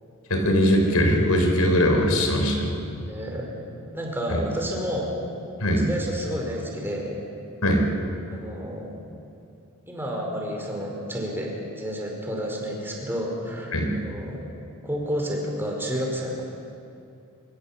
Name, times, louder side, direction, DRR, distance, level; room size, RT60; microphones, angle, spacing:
voice 1, 0.3-2.7 5.6-5.8 7.6-7.8 13.7-13.9, equal, 90° left, 2 dB, 4.6 m, -20 dB
voice 2, 3.0-3.6 3.9-5.2 5.8-7.2 8.3-8.9 9.9-14.4 14.8-16.4, equal, 10° right, -1 dB, 4.9 m, -30 dB
24.0 x 24.0 x 7.3 m, 2.6 s
head